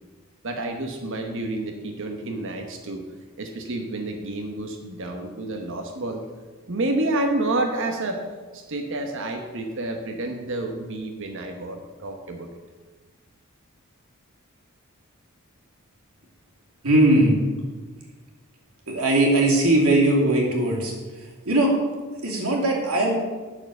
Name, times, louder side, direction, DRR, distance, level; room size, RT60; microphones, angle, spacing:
voice 1, 0.4-3.1 3.4-6.2 6.7-8.2 8.5-12.5, right 2 dB, 65° right, 4 dB, 1.0 m, -29 dB
voice 2, 16.8-17.4 18.9-20.9 21.5-21.7 22.2-23.2, right 1 dB, 90° right, -1 dB, 2.4 m, -19 dB
9.0 x 6.5 x 6.6 m, 1.4 s
head